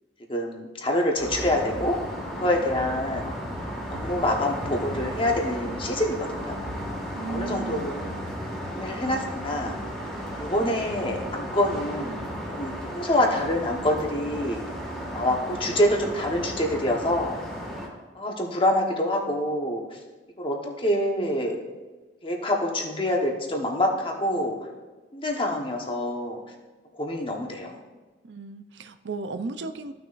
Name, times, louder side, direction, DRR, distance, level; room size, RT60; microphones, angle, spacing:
voice 1, 0.3-2.0 2.4-3.3 3.9-6.5 7.3-7.9 8.7-9.7 10.4-12.2 12.5-14.6 15.1-17.3 18.1-20.0 20.4-21.6 22.2-24.5 25.1-26.4 26.9-27.8, left 1 dB, 30° left, 1 dB, 1.2 m, -26 dB
sound 1, 1.2-17.9, equal, 5° left, 1.9 m, -34 dB
voice 2, 7.1-7.9 28.2-29.9, right 3 dB, 90° right, 10 dB, 0.5 m, -35 dB
14.5 x 6.0 x 2.6 m, 1.3 s
head